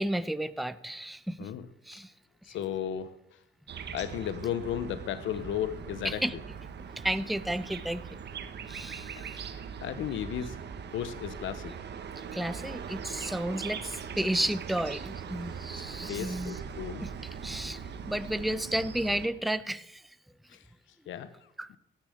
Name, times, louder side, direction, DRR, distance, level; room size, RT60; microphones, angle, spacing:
voice 1, 0.0-1.5 1.8-2.1 2.5-2.6 6.0-6.6 7.0-8.0 8.6-9.5 12.3-16.6 17.0-20.1 21.6-21.7, right 1 dB, ahead, 13 dB, 0.8 m, -33 dB
voice 2, 2.4-3.4 3.9-6.2 9.1-10.6 10.9-11.8 16.1-17.1 20.5-20.7 21.1-21.5, left 9 dB, 80° left, 11 dB, 1.1 m, -35 dB
sound 1, 3.7-19.3, right 6 dB, 60° right, 1.7 m, -41 dB
16.5 x 10.5 x 8.0 m, 0.80 s
cardioid pair, 90°, 20 cm